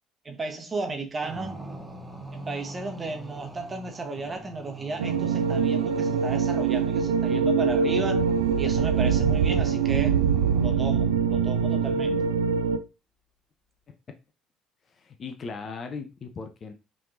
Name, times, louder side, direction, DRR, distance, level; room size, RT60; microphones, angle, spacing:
voice 1, 0.2-1.6 2.3-8.2 8.6-10.2 10.6-12.2, right 3 dB, 25° right, 1.2 m, -34 dB
sound 1, 1.2-11.1, right 1 dB, 10° right, 1.0 m, -44 dB
sound 2, 5.0-12.8, right 6 dB, 75° right, 0.3 m, -23 dB
voice 2, 14.9-16.7, left 4 dB, 40° left, 0.6 m, -38 dB
5.6 x 3.4 x 2.7 m
figure-of-eight pair, 55°, 0 cm